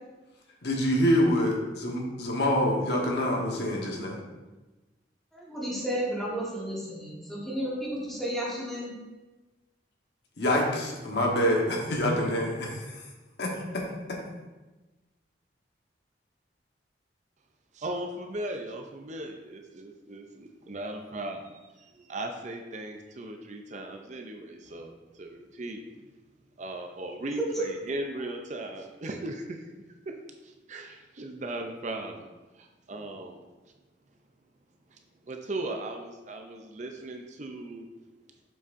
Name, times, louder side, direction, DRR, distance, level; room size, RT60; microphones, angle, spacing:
voice 1, 0.6-4.2 10.4-12.9 13.4-13.8 14.1-14.2, equal, 65° left, -1 dB, 1.2 m, -26 dB
voice 2, 5.3-8.9 27.6-27.7, right 1 dB, ahead, -6 dB, 1.5 m, -32 dB
voice 3, 17.7-25.8 26.6-29.6 30.0-30.1 30.4-33.4 34.9-37.9, right 2 dB, 40° right, 3 dB, 0.5 m, -38 dB
7.0 x 5.7 x 2.6 m, 1.2 s
head